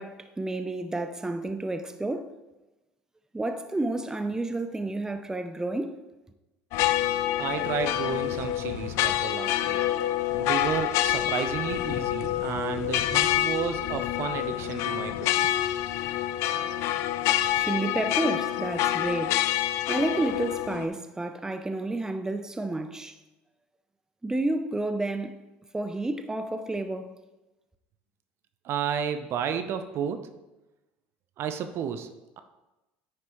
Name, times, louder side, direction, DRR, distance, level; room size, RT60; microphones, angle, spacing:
voice 1, 0.0-2.3 3.3-6.0 17.5-19.4 19.9-23.2 24.2-25.4 25.7-27.1, right 2 dB, 10° right, 0.6 m, -30 dB
sound 1, 6.7-20.9, left 13 dB, 65° left, 0.4 m, -27 dB
voice 2, 7.4-9.9 10.4-15.5 28.6-30.3 31.4-32.4, right 8 dB, 55° right, 0.7 m, -32 dB
9.7 x 5.9 x 3.1 m
supercardioid pair, 85°, 5 cm